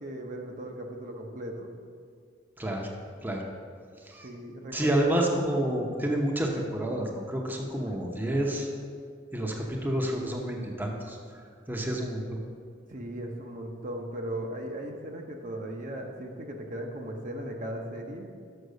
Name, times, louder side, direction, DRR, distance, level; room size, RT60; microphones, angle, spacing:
voice 1, 0.0-1.7 4.2-5.1 7.7-8.7 12.9-18.3, right 1 dB, 45° right, 2 dB, 0.8 m, -38 dB
voice 2, 2.6-2.9 3.2-3.4 4.0-4.3 4.7-8.7 9.3-11.4 11.7-12.4, right 1 dB, 10° right, 0 dB, 0.7 m, -29 dB
6.5 x 5.9 x 6.5 m, 2.1 s
head